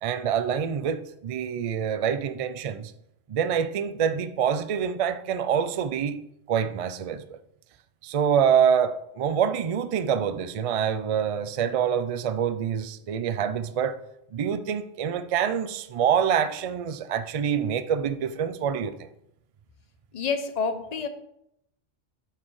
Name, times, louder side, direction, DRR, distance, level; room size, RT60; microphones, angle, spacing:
voice 1, 0.0-2.9 3.3-6.2 6.5-7.4 8.0-14.0 14.3-19.0, right 8 dB, 65° right, 0.3 m, -26 dB
voice 2, 20.1-21.1, left 5 dB, 40° left, 0.7 m, -28 dB
8.5 x 4.7 x 4.7 m
omnidirectional pair, 1.2 m